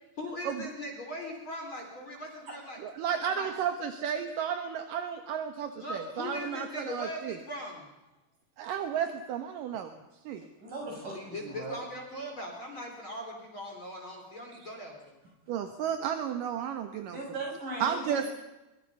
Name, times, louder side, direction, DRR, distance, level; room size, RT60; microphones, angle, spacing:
voice 1, 0.2-2.8 3.1-3.5 5.8-7.9 10.9-15.2, left 1 dB, 30° left, 1 dB, 3.9 m, -40 dB
voice 2, 2.8-7.4 8.6-9.9 10.3-10.4 14.6-14.7 15.5-17.2 17.8-18.2, right 8 dB, 65° right, 7 dB, 2.3 m, -33 dB
voice 3, 10.6-11.8 17.1-18.3, right 2 dB, 45° right, -1 dB, 9.2 m, -38 dB
24.0 x 23.5 x 5.5 m, 1.0 s
omnidirectional pair, 5.2 m